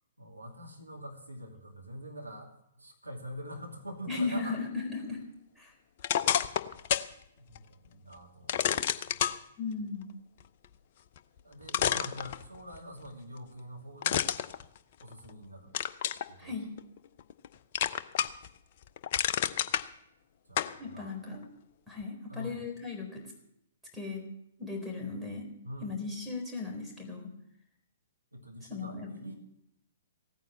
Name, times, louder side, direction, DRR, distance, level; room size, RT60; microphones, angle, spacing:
voice 1, 0.2-4.6 6.7-6.8 7.4-9.4 11.4-14.3 15.0-15.7 16.3-16.6 20.5-21.2 22.3-22.6 25.6-25.9 28.3-29.3, equal, 80° right, 3 dB, 2.6 m, -45 dB
voice 2, 4.1-5.2 5.6-5.7 9.6-10.1 16.4-16.7 20.8-21.4 21.9-23.2 23.9-24.2 24.6-25.5 25.8-27.3 28.7-29.3, left 4 dB, ahead, 0 dB, 4.0 m, -36 dB
sound 1, 6.0-7.1 7.5-7.6 8.5-9.4 11.2-11.3 11.7-12.8 14.0-15.3 15.7-16.3 16.8-17.5 17.7-18.5 18.8-19.8 20.6-20.7, left 10 dB, 45° left, 0.7 m, -29 dB
16.5 x 9.4 x 7.2 m, 0.76 s
figure-of-eight pair, 115°, 0 cm